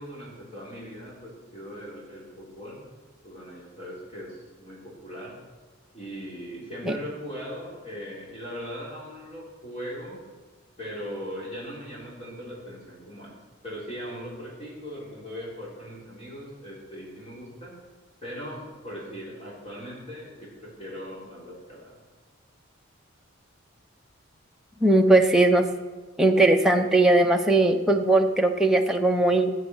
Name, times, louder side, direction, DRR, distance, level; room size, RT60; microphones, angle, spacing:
voice 1, 0.0-2.8 3.2-5.4 5.9-10.2 10.8-13.4 13.6-17.7 18.2-22.0, equal, 30° left, -6 dB, 3.7 m, -39 dB
voice 2, 24.8-25.7 26.2-29.5, right 2 dB, ahead, 1 dB, 0.7 m, -19 dB
16.0 x 7.6 x 6.4 m, 1.4 s
head